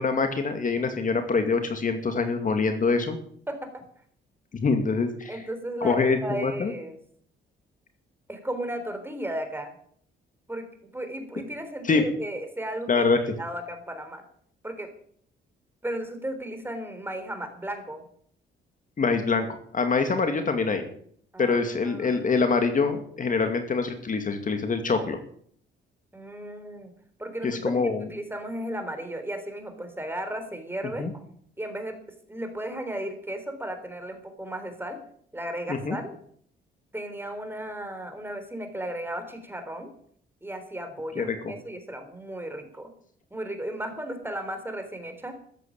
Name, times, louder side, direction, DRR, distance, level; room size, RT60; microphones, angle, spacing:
voice 1, 0.0-3.2 4.5-5.4 5.8-6.7 11.8-12.0 12.9-13.2 19.0-19.5 19.7-20.8 21.4-25.2 27.4-28.1 31.0-31.1 35.7-36.0 41.2-41.5, left 4 dB, 40° left, 7 dB, 2.3 m, -25 dB
voice 2, 3.5-3.8 5.3-7.0 8.3-9.7 10.5-13.0 13.4-14.2 14.6-14.9 15.8-18.0 21.3-22.2 26.1-26.9 27.2-27.8 28.1-31.0 31.6-31.9 32.3-35.0 35.3-36.0 36.9-39.9 40.4-42.9 43.3-45.3, right 1 dB, 10° right, 7 dB, 3.7 m, -35 dB
14.0 x 9.1 x 8.7 m, 0.62 s
cardioid pair, 90°, 20 cm